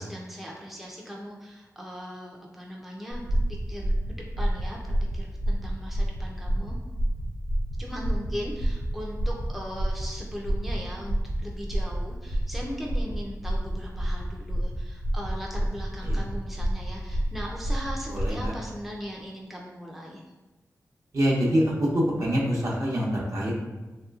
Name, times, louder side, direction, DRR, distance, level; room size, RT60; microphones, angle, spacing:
voice 1, 0.0-3.4 3.7-6.8 7.8-20.2, equal, 5° right, -2 dB, 0.4 m, -39 dB
sound 1, 3.1-18.5, right 1 dB, 90° right, 0.5 m, -29 dB
voice 2, 18.1-18.5 21.1-21.9 22.2-23.5, equal, 60° right, -4 dB, 0.8 m, -25 dB
3.1 x 2.8 x 2.3 m, 1.2 s
wide cardioid pair, 75°, 6 cm